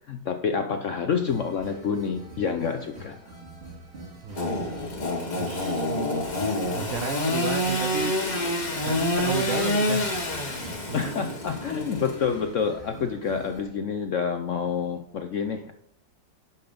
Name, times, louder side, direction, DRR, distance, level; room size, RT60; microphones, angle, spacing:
voice 1, 0.1-3.4 10.9-15.7, left 6 dB, 65° left, 0.8 m, -28 dB
sound 1, 1.1-13.6, right 2 dB, 35° right, 2.7 m, -45 dB
voice 2, 4.2-11.7, right 6 dB, 60° right, 1.0 m, -35 dB
Engine / Sawing, 4.3-12.6, left 1 dB, 30° left, 1.1 m, -27 dB
10.5 x 5.6 x 5.2 m
omnidirectional pair, 1.9 m